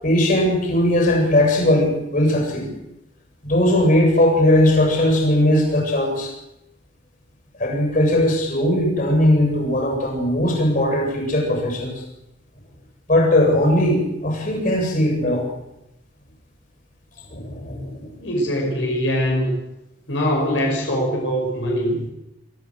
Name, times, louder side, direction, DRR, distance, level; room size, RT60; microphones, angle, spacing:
voice 1, 0.0-2.7 3.4-6.3 7.6-12.0 13.1-15.5 17.3-18.1, left 1 dB, 45° left, 2 dB, 7.7 m, -19 dB
voice 2, 18.2-19.6 20.1-22.0, equal, 85° left, 0 dB, 5.7 m, -22 dB
24.5 x 14.0 x 8.0 m, 0.86 s
head